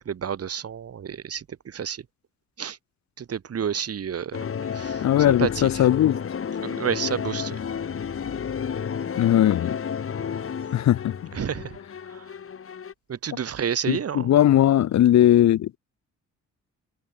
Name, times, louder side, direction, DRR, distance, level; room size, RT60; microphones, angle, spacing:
voice 1, 0.0-2.0 2.6-2.8 3.2-4.4 4.7-5.8 6.6-7.6 11.3-11.8 12.1-12.2 13.1-14.4, right 8 dB, 50° right, 4.8 m, -30 dB
sound 1, 4.3-12.9, left 7 dB, 45° left, 3.6 m, -31 dB
voice 2, 5.0-6.2 9.2-9.8 10.7-11.2 13.9-15.7, left 12 dB, 65° left, 1.2 m, -19 dB
cardioid pair, 90°, 30 cm